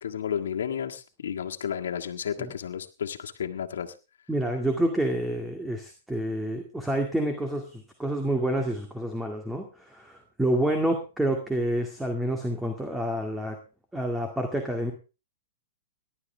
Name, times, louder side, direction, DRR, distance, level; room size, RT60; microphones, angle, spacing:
voice 1, 0.0-3.9, left 8 dB, 80° left, 3 dB, 1.7 m, -32 dB
voice 2, 4.3-13.6 13.9-14.9, right 1 dB, 5° right, 4 dB, 2.1 m, -28 dB
18.5 x 11.5 x 3.4 m, 0.32 s
hypercardioid pair, 130°, 0 cm